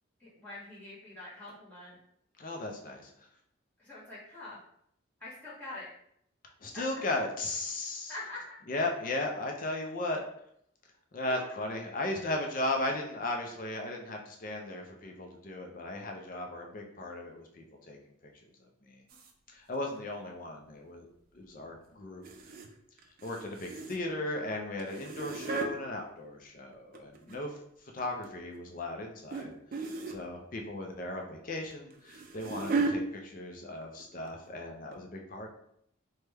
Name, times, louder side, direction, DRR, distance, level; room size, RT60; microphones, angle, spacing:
voice 1, 0.2-2.0 3.8-4.6 5.2-5.9 6.7-6.8 8.1-8.5 11.2-11.4 27.2-27.3, left 2 dB, 10° left, -11 dB, 1.3 m, -44 dB
voice 2, 2.4-3.1 6.6-8.1 8.7-10.2 11.1-18.0 18.2-18.3 18.9-19.0 19.5-21.1 21.3-22.2 23.2-27.6 27.9-29.5 30.1-35.5, left 2 dB, 40° left, 2 dB, 0.4 m, -36 dB
sound 1, 19.1-19.3 22.2-22.7 23.0-24.2 24.8-25.7 26.7-27.6 28.0-28.3 29.3-29.5 29.7-30.2 31.7-33.0 33.8-34.0 34.3-34.4 34.9-35.0, right 4 dB, 45° right, 0.3 m, -35 dB
3.1 x 2.2 x 3.3 m, 0.71 s
head